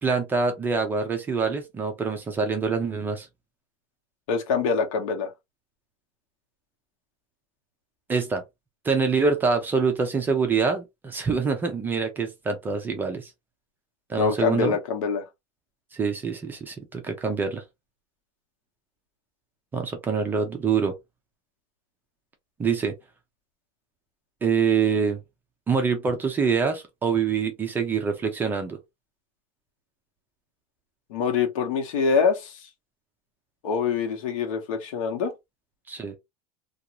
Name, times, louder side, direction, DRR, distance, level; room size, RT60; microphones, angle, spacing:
voice 1, 0.0-3.3 8.1-8.4 8.8-13.3 14.1-14.8 15.9-17.6 19.7-21.0 22.6-22.9 24.4-25.2 25.7-28.8 35.9-36.2, right 5 dB, 10° right, 0.4 m, -25 dB
voice 2, 4.3-5.3 14.2-15.2 31.1-32.5 33.6-35.3, left 5 dB, 75° left, 1.0 m, -24 dB
2.5 x 2.3 x 2.8 m
supercardioid pair, 175°, 17 cm